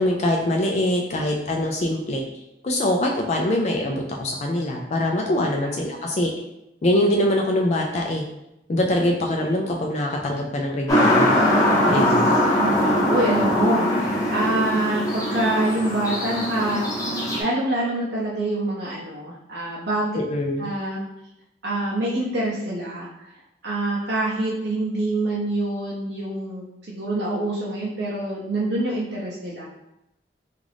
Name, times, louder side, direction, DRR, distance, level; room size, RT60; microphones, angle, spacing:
voice 1, 0.0-2.2 2.6-6.3 6.8-8.2 8.7-11.4 11.9-12.3 20.2-20.7, left 1 dB, 40° left, 0 dB, 0.3 m, -23 dB
voice 2, 5.2-5.7 11.8-17.0 17.4-20.2 20.6-21.0 21.6-23.1 23.6-29.7, right 1 dB, 70° right, -6 dB, 0.7 m, -26 dB
sound 1, 10.9-17.4, left 1 dB, 20° left, 0.9 m, -21 dB
3.7 x 2.5 x 3.3 m, 0.88 s
head